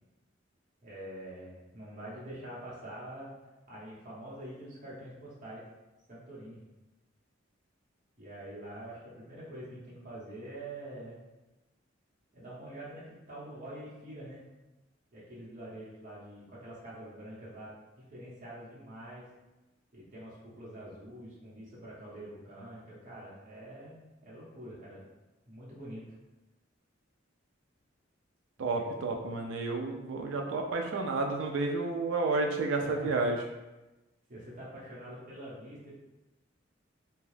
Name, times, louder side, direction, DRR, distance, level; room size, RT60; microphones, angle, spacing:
voice 1, 0.8-3.3 3.7-5.6 6.1-6.6 8.2-11.2 12.3-14.4 15.1-17.7 18.0-19.2 19.9-25.0 25.5-26.0 28.6-28.8 32.8-33.1 34.3-36.0, right 1 dB, 40° right, -7 dB, 1.0 m, -45 dB
voice 2, 28.6-33.4, right 3 dB, 75° right, 3 dB, 0.3 m, -31 dB
2.7 x 2.3 x 3.2 m, 1.1 s
head